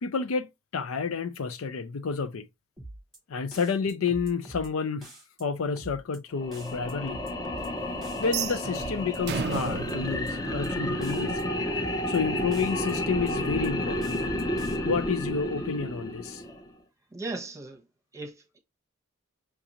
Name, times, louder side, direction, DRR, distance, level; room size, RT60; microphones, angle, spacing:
voice 1, 0.0-2.5 3.3-5.1 5.4-7.3 8.2-11.5 12.1-14.2 14.8-16.4, left 5 dB, 85° left, 0.5 m, -30 dB
sound 1, 2.8-3.2 3.5-4.7 5.0-5.4 5.8-6.2 6.5-7.7 8.0-8.4 8.8-9.2 9.5-10.7 11.0-11.4 11.8-12.2 12.5-13.7 14.0-14.8, right 2 dB, ahead, 1.2 m, -44 dB
sound 2, 6.3-16.7, left 1 dB, 20° left, 0.6 m, -31 dB
sound 3, 8.2-11.3, right 7 dB, 50° right, 0.3 m, -34 dB
voice 2, 17.1-17.8 18.1-18.6, right 3 dB, 15° right, 0.9 m, -37 dB
5.8 x 2.6 x 2.9 m
head